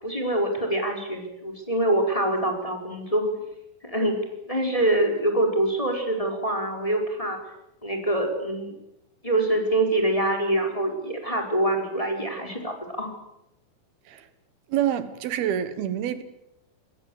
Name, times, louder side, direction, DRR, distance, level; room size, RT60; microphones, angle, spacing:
voice 1, 0.0-3.3 3.8-4.2 4.5-7.4 7.8-8.7 9.2-13.1, right 1 dB, 10° left, 4.5 m, -25 dB
voice 2, 14.7-16.2, right 10 dB, 80° right, 3.2 m, -27 dB
25.5 x 21.0 x 8.0 m
omnidirectional pair, 4.4 m